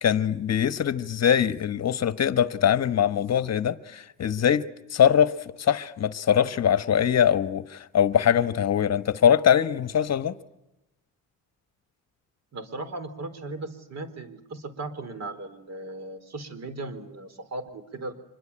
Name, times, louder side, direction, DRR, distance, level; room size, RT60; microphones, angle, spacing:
voice 1, 0.0-10.3, left 9 dB, 50° left, 1.2 m, -22 dB
voice 2, 12.5-18.1, right 2 dB, 50° right, 4.1 m, -37 dB
25.5 x 22.5 x 8.8 m
cardioid pair, 110°, 34 cm